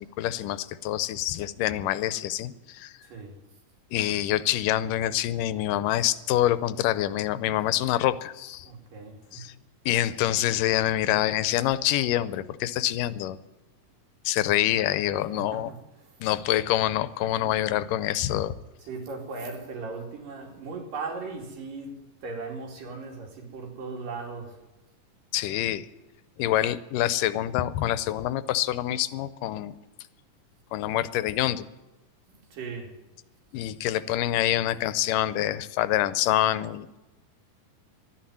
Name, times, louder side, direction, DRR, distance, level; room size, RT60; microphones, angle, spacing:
voice 1, 0.0-2.9 3.9-8.7 9.3-9.5 9.9-13.4 14.2-15.7 16.2-18.6 25.3-25.9 26.4-29.8 30.7-31.7 33.5-36.9, left 13 dB, 90° left, 2.3 m, -26 dB
voice 2, 3.0-3.4 8.6-9.6 15.1-15.8 17.4-17.5 18.8-24.5 32.5-32.9, right 4 dB, 90° right, 4.4 m, -38 dB
13.0 x 10.5 x 9.4 m
omnidirectional pair, 3.7 m